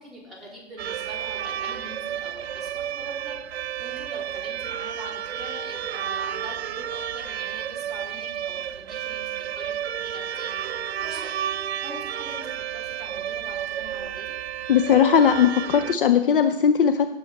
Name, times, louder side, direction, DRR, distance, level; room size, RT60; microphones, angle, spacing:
voice 1, 0.0-14.3, equal, ahead, -8 dB, 3.8 m, -43 dB
sound 1, 0.8-16.0, right 9 dB, 60° right, 0.6 m, -31 dB
voice 2, 14.7-17.1, left 8 dB, 50° left, 9 dB, 0.7 m, -18 dB
16.5 x 6.5 x 4.1 m, 0.95 s
hypercardioid pair, 135°, 35 cm